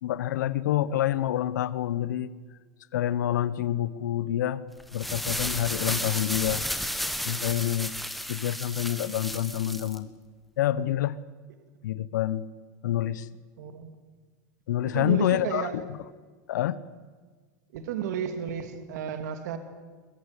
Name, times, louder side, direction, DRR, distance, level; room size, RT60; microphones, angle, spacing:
voice 1, 0.0-2.3 2.9-4.6 4.9-6.6 7.2-7.9 8.3-10.1 10.6-11.2 11.8-12.5 12.8-13.3 14.7-15.7 16.5-16.8, left 12 dB, 85° left, 1.1 m, -27 dB
sound 1, 4.8-10.0, equal, ahead, 1.5 m, -33 dB
voice 2, 13.6-14.0 14.8-15.8 17.7-19.6, right 9 dB, 75° right, 2.6 m, -33 dB
23.0 x 22.0 x 8.4 m
supercardioid pair, 150°, 9 cm